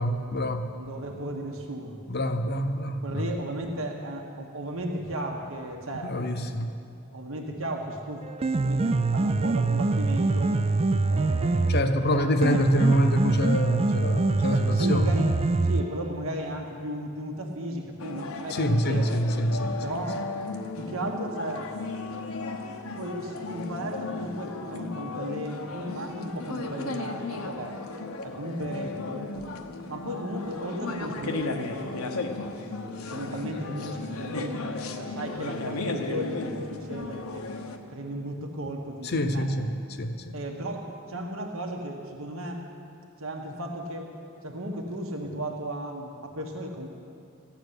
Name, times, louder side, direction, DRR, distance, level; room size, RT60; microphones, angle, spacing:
voice 1, 0.0-0.7 2.1-3.2 6.0-6.7 11.7-15.1 18.5-19.8 39.0-40.3, equal, 50° left, 7 dB, 0.9 m, -26 dB
voice 2, 0.7-2.0 3.0-6.2 6.4-6.6 7.1-8.3 8.5-10.6 11.1-11.7 12.1-12.6 14.5-15.3 15.6-19.1 19.8-20.2 20.8-21.7 23.0-27.8 28.2-29.3 29.9-37.5 37.9-39.5 40.3-42.6 43.2-44.1 44.4-46.9, right 1 dB, 70° right, 2 dB, 1.4 m, -35 dB
Piano, 8.2-16.2, right 3 dB, 30° right, 0.3 m, -24 dB
sound 1, 18.0-37.8, left 3 dB, 85° left, 1.1 m, -35 dB
15.0 x 7.2 x 9.8 m, 2.4 s
head